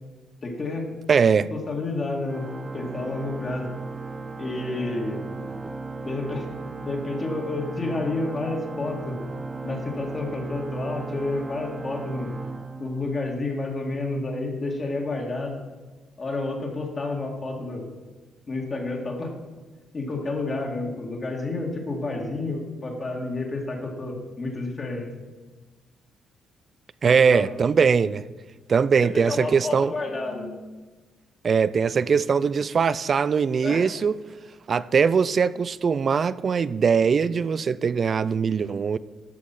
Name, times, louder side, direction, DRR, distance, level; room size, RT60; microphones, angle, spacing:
voice 1, 0.4-0.9 1.5-2.5 2.7-3.7 4.4-5.2 6.0-6.5 6.8-9.2 9.6-12.4 12.8-15.6 16.2-17.8 18.5-19.3 19.9-25.1 27.0-27.5 29.1-30.6 33.6-33.8, left 2 dB, 40° left, 2.1 m, -30 dB
voice 2, 1.1-1.5 27.0-28.2 28.7-29.9 31.4-34.2 34.7-39.0, right 6 dB, 45° right, 0.4 m, -21 dB
Organ, 2.3-13.4, right 3 dB, 30° right, 0.9 m, -36 dB
13.0 x 5.4 x 5.7 m
cardioid pair, 90°, 0 cm